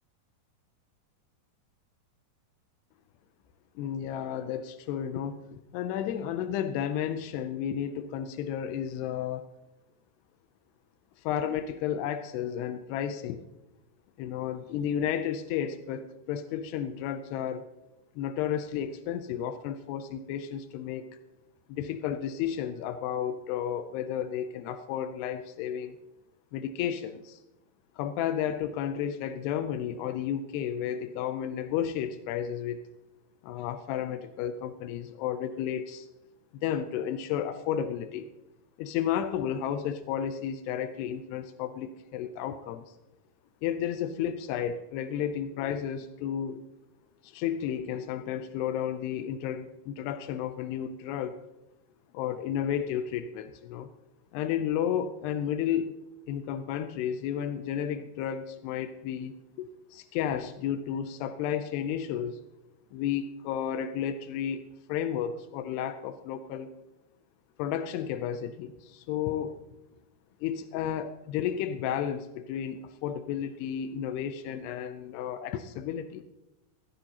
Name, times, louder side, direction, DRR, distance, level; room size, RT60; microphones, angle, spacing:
voice 1, 3.8-9.5 11.2-13.4 14.2-17.7 18.2-21.1 21.7-26.0 26.5-27.4 28.0-32.8 33.4-36.1 36.6-38.3 38.8-42.8 43.6-46.6 47.2-51.4 52.1-53.9 54.3-55.9 56.3-62.4 62.9-66.7 67.6-69.6 70.4-76.2, left 9 dB, 90° left, 10 dB, 2.3 m, -32 dB
16.5 x 14.0 x 2.9 m, 0.96 s
omnidirectional pair, 5.4 m